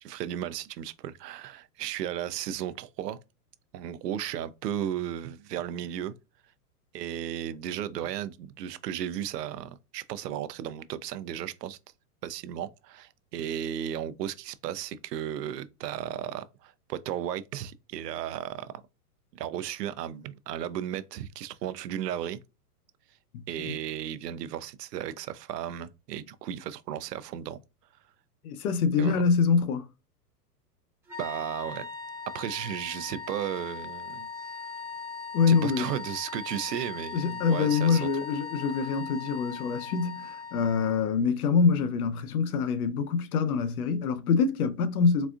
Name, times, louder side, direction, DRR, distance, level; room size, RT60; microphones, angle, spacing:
voice 1, 0.0-3.2 3.7-6.1 6.9-11.8 12.2-18.7 19.3-22.4 23.5-27.6 29.0-29.2 31.2-31.9 32.3-34.3 35.5-38.1, right 10 dB, 90° right, 0.6 m, -35 dB
voice 2, 23.3-23.7 28.4-29.9 35.3-35.9 37.1-45.3, left 5 dB, 65° left, 0.7 m, -25 dB
sound 1, 31.1-41.1, left 5 dB, 5° right, 0.7 m, -39 dB
4.1 x 2.4 x 2.3 m
supercardioid pair, 155°, 47 cm